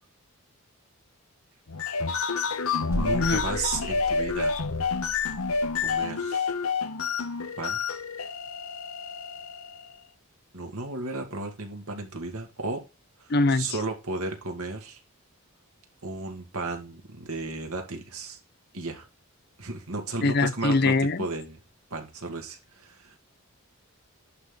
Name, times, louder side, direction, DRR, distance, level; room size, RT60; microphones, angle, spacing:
sound 1, 1.7-9.9, left 5 dB, 75° left, 0.9 m, -29 dB
sound 2, 2.9-6.0, equal, 10° right, 2.3 m, -36 dB
voice 1, 2.9-4.6 5.8-6.5 7.6-7.8 10.5-12.8 13.2-15.0 16.0-18.4 18.7-19.1 19.6-20.9 21.2-21.6 21.9-23.2, right 3 dB, 80° right, 2.4 m, -34 dB
voice 2, 13.3-13.8 20.2-21.3, left 3 dB, 45° left, 0.6 m, -23 dB
11.0 x 4.3 x 3.8 m
head